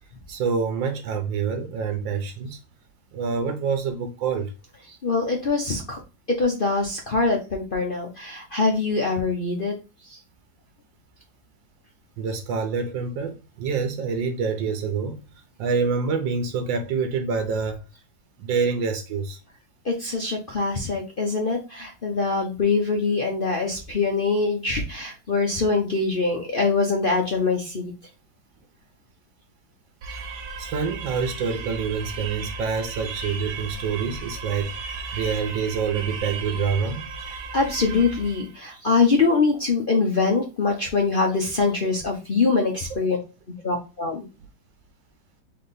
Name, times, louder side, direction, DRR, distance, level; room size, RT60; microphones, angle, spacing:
voice 1, 0.3-2.6 3.1-4.5 12.2-17.8 18.4-19.4 30.6-37.1, right 5 dB, 85° right, 1.4 m, -27 dB
voice 2, 5.0-6.0 6.4-9.7 10.1-10.2 19.8-27.9 37.5-43.2 43.6-44.2, left 4 dB, 50° left, 0.6 m, -23 dB
sound 1, 30.0-38.6, right 4 dB, 70° right, 1.3 m, -35 dB
3.9 x 3.3 x 4.0 m
omnidirectional pair, 2.0 m